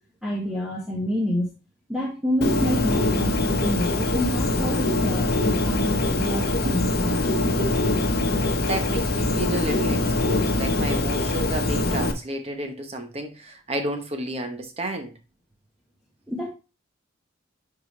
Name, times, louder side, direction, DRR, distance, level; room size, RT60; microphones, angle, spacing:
voice 1, 0.2-1.5 1.9-7.1 16.3-16.5, equal, ahead, 1.4 m, -28 dB
Bird, 2.4-12.1, left 2 dB, 50° left, 1.1 m, -23 dB
voice 2, 6.0-6.8 7.4-7.9 8.7-15.1, right 1 dB, 30° right, 1.0 m, -31 dB
10.5 x 3.8 x 3.2 m
head